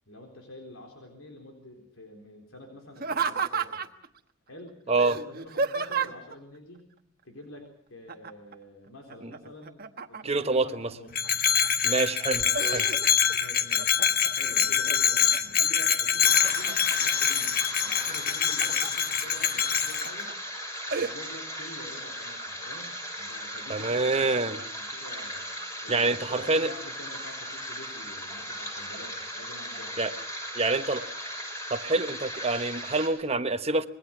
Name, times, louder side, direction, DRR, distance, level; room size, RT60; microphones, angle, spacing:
voice 1, 0.1-3.8 4.5-6.8 7.2-11.2 12.3-12.6 12.9-13.1 13.4-17.5 17.8-20.3 20.9-25.5 25.8-30.1, left 1 dB, 90° left, 2 dB, 4.3 m, -47 dB
Laughter, 2.9-4.1 5.0-6.3 8.1-8.5 8.9-10.5 11.0-11.7 12.1-13.4 13.8-14.3 14.8-15.6 16.1-16.9 18.1-18.9 19.4-19.5 20.0-20.3 20.9-21.1, right 5 dB, 50° right, 1.2 m, -32 dB
voice 2, 4.9-5.2 9.2-9.3 10.2-10.9 11.8-12.4 12.7-12.8 23.7-24.6 25.9-26.7 30.0-30.1 30.5-31.1 31.7-33.9, right 3 dB, 30° right, 10 dB, 1.1 m, -26 dB
Bell, 11.1-20.1, left 8 dB, 50° left, 1.5 m, -25 dB
sound 1, 16.2-33.1, equal, 15° left, 6.4 m, -37 dB
26.0 x 21.0 x 6.1 m, 0.69 s
head